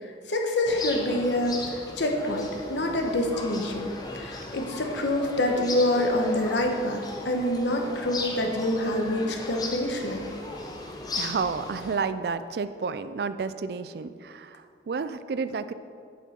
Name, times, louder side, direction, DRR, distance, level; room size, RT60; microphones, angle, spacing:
voice 1, 0.0-10.3, left 1 dB, 75° left, 2 dB, 1.1 m, -27 dB
sound 1, 0.6-12.0, left 2 dB, 20° left, 0.7 m, -37 dB
voice 2, 11.1-15.7, right 5 dB, 60° right, 13 dB, 0.3 m, -31 dB
8.3 x 8.2 x 4.3 m, 2.3 s
head